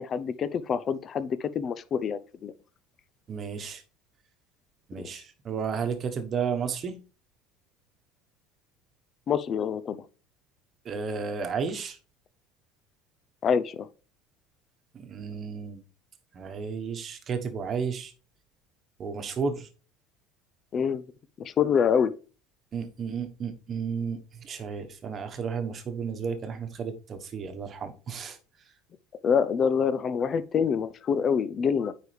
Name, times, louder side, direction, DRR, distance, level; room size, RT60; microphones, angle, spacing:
voice 1, 0.0-2.5 9.3-10.0 13.4-13.9 20.7-21.0 21.4-22.1 29.2-31.9, left 7 dB, 35° left, 0.6 m, -26 dB
voice 2, 3.3-3.8 4.9-7.0 10.8-12.0 14.9-15.8 16.3-18.1 19.0-19.7 22.7-28.4, right 6 dB, 35° right, 1.2 m, -33 dB
9.1 x 4.9 x 3.3 m
cardioid pair, 130°, 0 cm